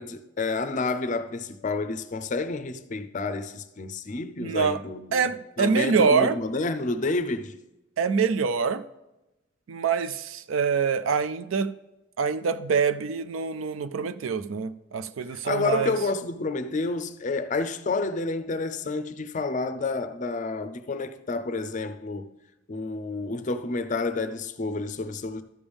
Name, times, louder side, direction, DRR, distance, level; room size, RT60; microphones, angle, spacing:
voice 1, 0.0-7.5 15.4-22.3 22.7-25.4, left 3 dB, 40° left, 0.5 m, -29 dB
voice 2, 4.4-4.8 5.1-6.4 8.0-8.8 9.7-11.7 12.2-15.9, right 5 dB, 80° right, 0.4 m, -25 dB
12.0 x 7.0 x 3.5 m
head